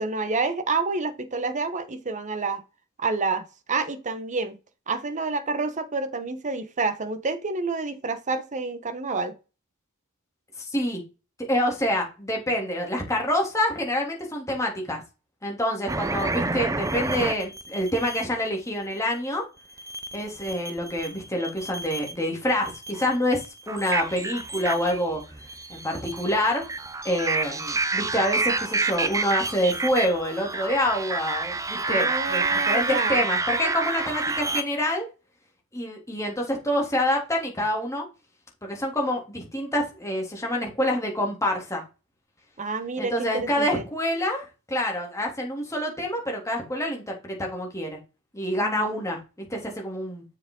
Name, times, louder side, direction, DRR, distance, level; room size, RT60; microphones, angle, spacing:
voice 1, 0.0-2.6 3.0-4.6 4.9-9.4 16.4-16.6 17.2-17.3 31.9-33.2 42.6-43.8 48.6-48.9, right 3 dB, 35° right, 0.9 m, -28 dB
voice 2, 10.7-11.0 11.5-15.0 15.4-19.4 20.1-25.2 25.7-26.6 27.0-35.1 35.7-38.0 38.6-41.8 43.0-48.0 48.3-50.2, left 1 dB, 15° left, 2.7 m, -27 dB
sound 1, 15.9-18.2 19.8-21.1 21.4-22.2 22.7-34.6, right 3 dB, 15° right, 0.6 m, -29 dB
7.2 x 5.9 x 3.7 m
head